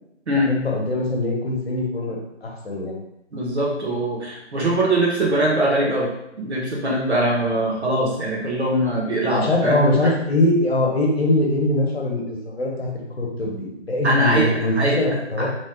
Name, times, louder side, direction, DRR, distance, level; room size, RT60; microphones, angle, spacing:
voice 1, 0.5-3.0 9.3-12.9 13.2-15.5, left 1 dB, 60° left, -1 dB, 0.9 m, -22 dB
voice 2, 3.3-6.1 6.4-10.1 14.0-15.0 15.4-15.5, right 1 dB, 65° right, -3 dB, 1.1 m, -22 dB
3.1 x 2.2 x 2.9 m, 0.82 s
figure-of-eight pair, 170°, 36 cm